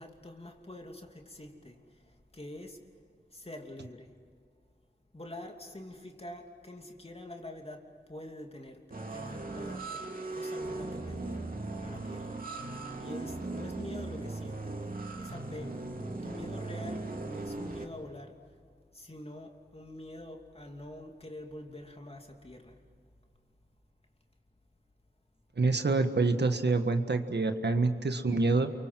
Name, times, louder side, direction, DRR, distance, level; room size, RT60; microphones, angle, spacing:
voice 1, 0.0-2.8 3.3-4.1 5.1-10.0 10.3-11.5 11.8-12.4 13.0-14.8 15.2-15.9 16.2-18.4 18.9-22.8, left 1 dB, 35° left, 3 dB, 2.9 m, -46 dB
sound 1, 8.9-17.8, right 2 dB, 55° right, 2.9 m, -38 dB
voice 2, 25.6-28.7, right 3 dB, 75° right, 7 dB, 1.6 m, -27 dB
29.0 x 24.0 x 7.7 m, 2.2 s
wide cardioid pair, 60°, 18 cm